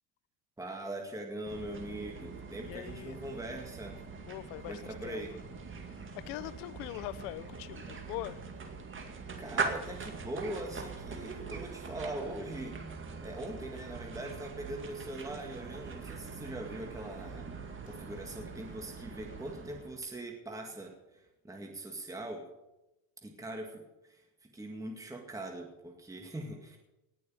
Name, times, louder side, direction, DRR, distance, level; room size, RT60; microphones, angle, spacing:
voice 1, 0.6-4.0 4.7-5.3 9.4-12.8 13.2-17.5 17.8-22.5 23.2-26.8, right 1 dB, 10° right, 2.1 m, -42 dB
sound 1, 1.5-20.1, right 4 dB, 30° right, 2.1 m, -42 dB
voice 2, 2.6-3.2 4.2-5.2 5.9-8.5, left 16 dB, 90° left, 1.0 m, -42 dB
18.5 x 6.6 x 8.8 m
cardioid pair, 130°, 41 cm